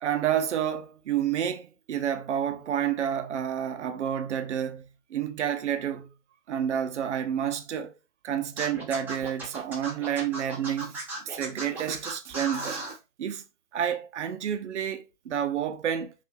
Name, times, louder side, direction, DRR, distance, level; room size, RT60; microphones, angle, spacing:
voice 1, 0.0-6.1 6.5-7.9 8.2-11.0 11.2-13.4 13.7-16.1, right 9 dB, 50° right, 0.7 m, -29 dB
Scratching (performance technique), 8.6-12.9, right 2 dB, 5° right, 0.8 m, -36 dB
5.7 x 2.6 x 2.6 m
figure-of-eight pair, 130°, 45 cm